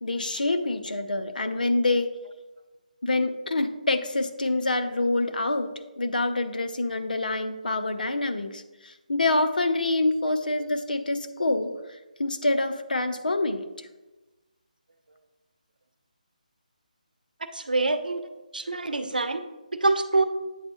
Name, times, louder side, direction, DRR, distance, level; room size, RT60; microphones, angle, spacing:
voice 1, 0.0-2.1 3.0-5.7 6.0-13.9, left 2 dB, 80° left, 8 dB, 0.7 m, -26 dB
voice 2, 17.5-18.2 18.5-19.4 19.8-20.2, right 3 dB, 85° right, 10 dB, 0.7 m, -25 dB
8.3 x 6.3 x 3.0 m, 1.1 s
figure-of-eight pair, 155°, 5 cm